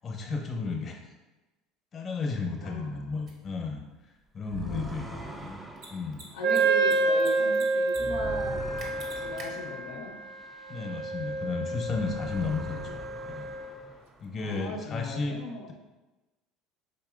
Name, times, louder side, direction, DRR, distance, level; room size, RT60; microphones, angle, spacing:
voice 1, 0.0-1.1 1.9-3.8 4.3-5.6 5.9-6.2 10.7-13.5 14.2-15.4, left 4 dB, 35° left, 2 dB, 0.7 m, -33 dB
voice 2, 2.6-3.1 4.6-5.5 6.3-8.7 9.2-10.2 12.7-12.9 14.4-15.7, left 4 dB, 80° left, 1 dB, 0.4 m, -39 dB
Mechanisms, 3.3-3.4 5.7-5.9 6.1-6.2 6.5-7.3 7.5-8.0 8.2-8.3 8.8-9.5, right 3 dB, 50° right, 0.8 m, -44 dB
sound 1, 4.4-11.4 11.7-14.4, right 2 dB, 10° right, 0.4 m, -43 dB
Wind instrument woodwind instrument, 6.4-13.8, right 3 dB, 80° right, 0.4 m, -29 dB
4.2 x 2.9 x 2.4 m, 1.1 s
supercardioid pair, 90°, 0 cm